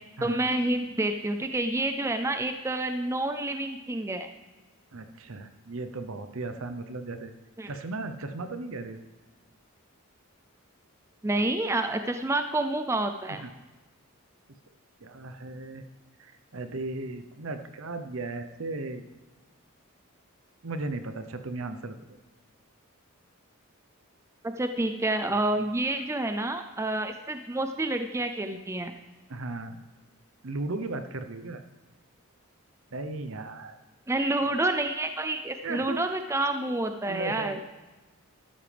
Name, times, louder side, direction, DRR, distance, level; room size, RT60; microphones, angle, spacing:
voice 1, 0.2-4.3 7.6-7.7 11.2-13.4 24.4-28.9 34.1-37.6, right 2 dB, 10° right, 7 dB, 0.4 m, -28 dB
voice 2, 4.9-7.3 7.7-9.0 13.3-13.5 15.0-15.8 16.2-19.1 20.6-22.2 29.3-29.8 30.4-31.6 32.9-33.8 35.6-36.0 37.1-37.6, right 3 dB, 65° right, 9 dB, 0.8 m, -36 dB
12.5 x 12.5 x 3.4 m, 1.2 s
head